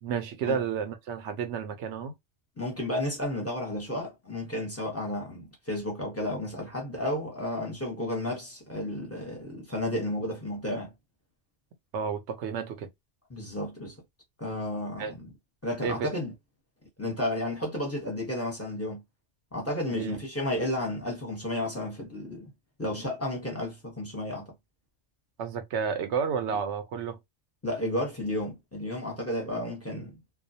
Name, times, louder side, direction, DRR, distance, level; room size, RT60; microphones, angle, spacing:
voice 1, 0.0-2.1 11.9-12.9 15.0-15.1 15.8-16.1 19.9-20.2 25.4-27.2, right 6 dB, 70° right, 0.8 m, -31 dB
voice 2, 2.6-10.9 13.3-14.0 14.4-15.3 15.6-16.3 17.0-19.0 19.5-22.5 22.8-24.5 27.6-30.2, left 1 dB, 15° left, 0.8 m, -32 dB
2.3 x 2.2 x 2.7 m
omnidirectional pair, 1.2 m